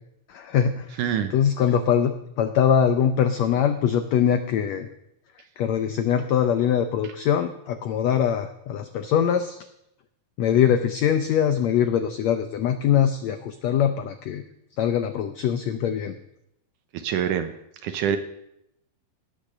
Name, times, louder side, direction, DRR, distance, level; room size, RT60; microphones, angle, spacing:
voice 1, 0.3-0.9 1.3-2.1 2.4-4.9 5.6-9.6 10.4-14.4 14.8-16.1, left 8 dB, 90° left, 9 dB, 1.5 m, -22 dB
voice 2, 1.0-1.3 7.0-7.1 16.9-17.5 17.8-18.2, right 9 dB, 75° right, 8 dB, 2.2 m, -25 dB
17.5 x 8.8 x 6.7 m, 0.79 s
omnidirectional pair, 4.1 m